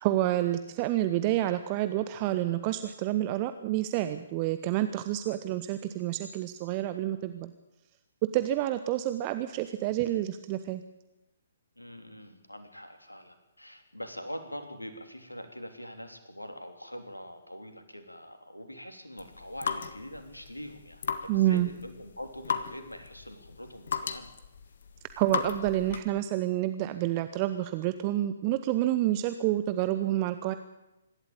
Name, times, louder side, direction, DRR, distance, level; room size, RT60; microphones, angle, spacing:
voice 1, 0.0-7.5 8.3-10.8 21.3-21.7 25.2-30.5, right 14 dB, 30° right, 11 dB, 1.0 m, -28 dB
voice 2, 11.7-24.3, equal, 85° left, 6 dB, 3.2 m, -44 dB
sound 1, 19.2-26.2, left 6 dB, 55° left, 1.7 m, -36 dB
25.5 x 12.5 x 8.9 m, 0.95 s
figure-of-eight pair, 125°, 0 cm